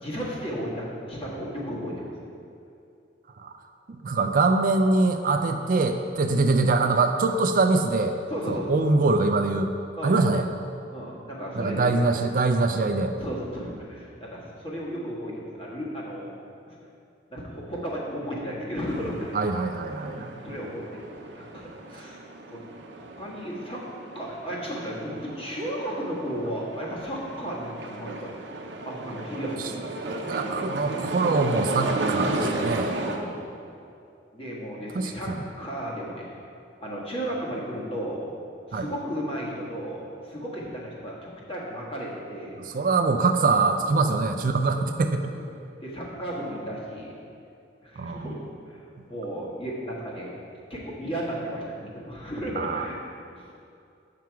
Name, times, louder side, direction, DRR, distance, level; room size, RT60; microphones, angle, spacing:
voice 1, 0.0-2.1 6.2-6.4 8.3-8.8 10.0-10.2 10.9-11.9 13.2-16.3 16.7-16.8 17.3-19.5 19.9-21.1 21.3-22.2 22.5-23.8 24.1-28.3 28.8-29.7 32.9-33.4 34.3-36.4 36.8-38.2 38.7-42.5 43.9-44.1 45.8-47.1 47.8-50.3 50.7-53.0 53.4-53.5, equal, 30° left, -4 dB, 1.5 m, -34 dB
voice 2, 4.0-8.2 8.5-9.7 10.0-10.4 11.6-13.1 19.3-20.3 29.9-32.9 34.9-35.4 38.7-38.9 42.6-45.3 48.0-48.3 52.6-52.9, right 3 dB, 50° right, 6 dB, 0.4 m, -23 dB
sound 1, 18.9-33.2, right 2 dB, 70° right, 0.7 m, -34 dB
7.7 x 5.8 x 4.6 m, 2.6 s
head